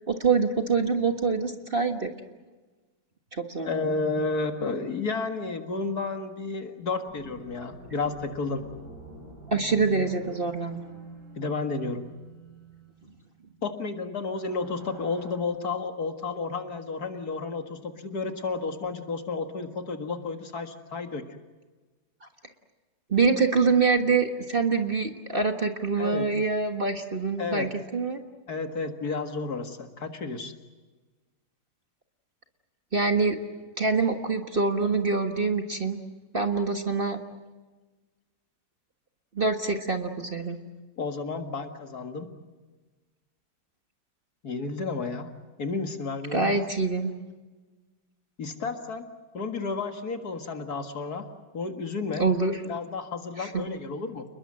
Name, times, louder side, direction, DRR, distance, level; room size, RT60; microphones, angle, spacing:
voice 1, 0.0-2.1 3.3-3.9 9.5-10.8 23.1-28.2 32.9-33.4 33.8-36.0 36.3-37.2 39.3-40.6 46.3-47.1 52.2-52.6 53.4-53.6, right 4 dB, 30° right, 5 dB, 1.5 m, -25 dB
voice 2, 3.6-8.6 11.4-12.0 13.6-21.3 26.0-26.3 27.4-27.7 28.5-30.5 41.0-42.3 44.4-45.3 45.6-46.6 48.4-49.1 49.3-51.3 51.5-52.3 52.7-54.3, left 4 dB, 55° left, 6 dB, 2.3 m, -32 dB
sound 1, 7.1-13.1 14.1-15.4, right 2 dB, 65° right, 4.4 m, -47 dB
30.0 x 21.0 x 7.6 m, 1.3 s
omnidirectional pair, 2.0 m